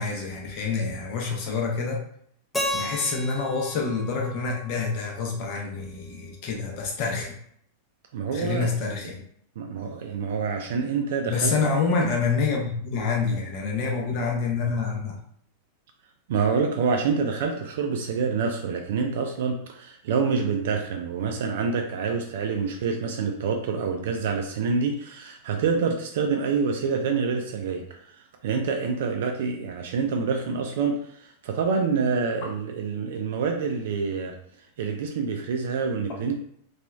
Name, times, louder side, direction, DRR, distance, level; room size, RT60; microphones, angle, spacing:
voice 1, 0.0-2.0 2.7-7.3 8.3-9.2 11.3-15.2, left 4 dB, 45° left, -1 dB, 0.7 m, -27 dB
Keyboard (musical), 2.5-5.5, left 1 dB, 10° left, 0.5 m, -34 dB
voice 2, 8.1-8.7 9.6-11.5 16.3-28.0 28.4-34.4 34.8-36.3, right 5 dB, 55° right, 3 dB, 0.3 m, -27 dB
2.9 x 2.3 x 2.3 m, 0.66 s
figure-of-eight pair, 90°, 0 cm